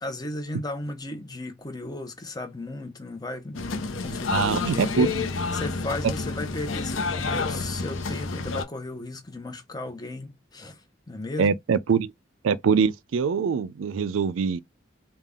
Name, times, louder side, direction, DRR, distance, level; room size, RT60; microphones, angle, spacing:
voice 1, 0.0-3.7 4.0-5.2 5.5-11.5, left 2 dB, 20° left, 0.8 m, -35 dB
sound 1, 3.5-8.6, left 4 dB, 85° left, 0.7 m, -29 dB
voice 2, 4.3-5.1 11.4-12.1 12.4-14.6, right 6 dB, 90° right, 0.4 m, -23 dB
3.7 x 2.3 x 3.6 m
head